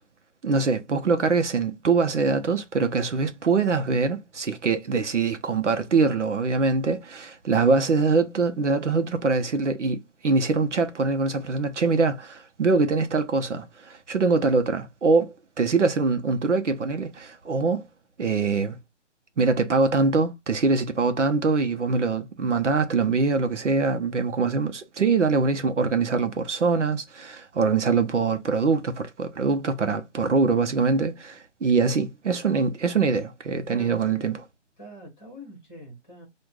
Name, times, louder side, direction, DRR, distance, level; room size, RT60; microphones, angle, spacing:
voice 1, 0.4-17.8 18.2-18.8 19.4-34.4, right 4 dB, 75° right, 0.9 m, -23 dB
voice 2, 33.7-34.4 34.8-36.3, right 1 dB, 5° left, 1.4 m, -44 dB
6.3 x 2.5 x 2.4 m
hypercardioid pair, 175°, 36 cm